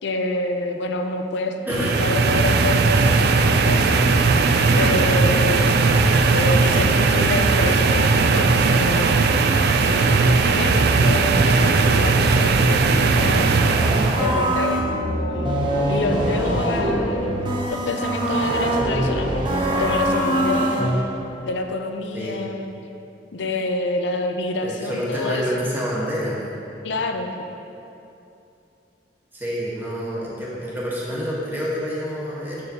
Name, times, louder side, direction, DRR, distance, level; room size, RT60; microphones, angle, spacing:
voice 1, 0.0-4.0 4.8-5.9 6.3-9.2 9.9-13.5 14.2-17.3 17.7-20.9 21.4-22.7 23.3-25.8 26.8-27.4, left 2 dB, 85° left, 5 dB, 0.5 m, -27 dB
voice 2, 1.7-2.0 11.4-11.6 22.1-22.4 24.6-26.4 29.3-32.6, equal, 10° right, -7 dB, 1.3 m, -28 dB
sound 1, 1.7-14.3, right 4 dB, 65° right, 0.3 m, -18 dB
sound 2, 13.7-21.0, right 1 dB, 30° right, 0.8 m, -23 dB
6.8 x 6.7 x 2.9 m, 2.7 s
head